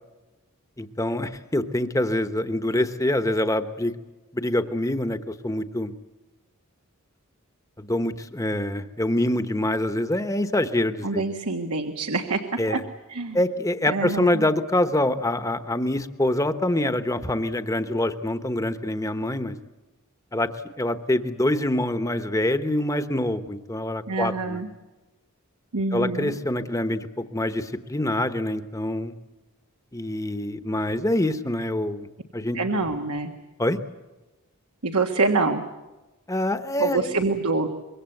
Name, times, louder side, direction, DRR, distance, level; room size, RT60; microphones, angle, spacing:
voice 1, 0.8-4.0 4.3-5.9 7.8-11.2 12.6-12.8 13.3-19.5 20.3-20.5 20.8-24.6 25.9-29.1 29.9-32.6 33.6-33.8 36.3-37.1, left 1 dB, 15° left, 10 dB, 1.1 m, -25 dB
voice 2, 11.0-12.4 12.7-12.8 13.1-13.4 13.9-14.5 24.1-24.7 25.7-26.3 32.5-33.3 34.8-35.6 36.8-37.7, right 3 dB, 90° right, 4 dB, 1.6 m, -25 dB
25.0 x 23.0 x 7.9 m, 1.1 s
head